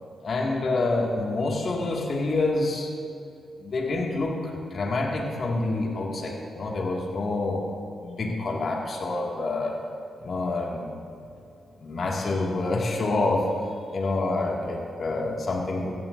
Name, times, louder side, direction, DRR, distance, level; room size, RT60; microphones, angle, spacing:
voice 1, 0.2-2.9 3.6-7.6 8.0-9.8 10.2-10.8 11.8-13.5 13.9-15.9, left 2 dB, 55° left, 0 dB, 2.2 m, -27 dB
16.5 x 15.0 x 2.7 m, 2.6 s
hypercardioid pair, 40°, 0 cm